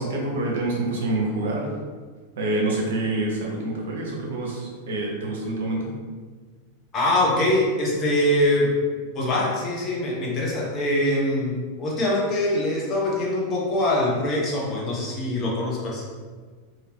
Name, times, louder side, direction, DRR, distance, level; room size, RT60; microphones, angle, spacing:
voice 1, 0.0-1.7 2.4-5.9, right 2 dB, 60° right, -2 dB, 0.8 m, -26 dB
voice 2, 6.9-8.7 9.1-16.0, left 1 dB, 30° left, -4 dB, 0.8 m, -23 dB
2.8 x 2.6 x 3.4 m, 1.5 s
figure-of-eight pair, 90°, 0 cm